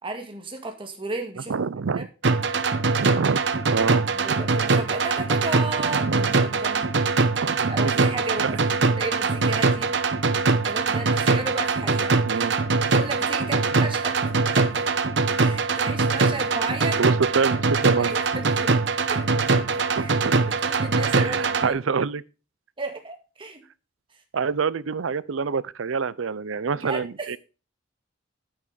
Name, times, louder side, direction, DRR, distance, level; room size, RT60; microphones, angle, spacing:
voice 1, 0.0-1.5 1.9-2.0 4.1-7.0 7.7-9.9 10.6-12.2 12.9-14.9 15.4-17.0 17.9-18.7 19.1-19.3 19.7-20.1 20.6-21.7 22.8-23.6 26.8-27.3, right 2 dB, 25° right, 2.0 m, -34 dB
voice 2, 1.5-2.1 3.0-3.4 3.7-4.4 5.8-6.3 7.4-8.6 12.3-12.6 17.0-18.2 20.0-20.4 21.1-22.2 24.3-27.4, right 5 dB, 85° right, 0.6 m, -27 dB
sound 1, 2.2-21.7, right 4 dB, 60° right, 0.9 m, -22 dB
9.3 x 9.2 x 3.9 m
head